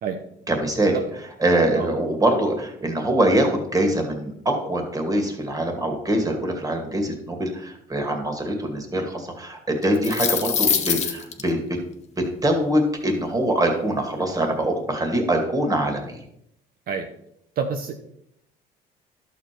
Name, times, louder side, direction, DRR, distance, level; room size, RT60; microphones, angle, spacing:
voice 1, 0.5-1.0 1.4-11.6 12.4-16.2, right 1 dB, 20° right, 3 dB, 2.3 m, -23 dB
sound 1, 9.8-11.4, left 7 dB, 40° left, 1.1 m, -23 dB
voice 2, 17.6-17.9, right 6 dB, 60° right, 5 dB, 1.0 m, -27 dB
11.5 x 7.0 x 4.6 m, 0.75 s
cardioid pair, 110°, 17 cm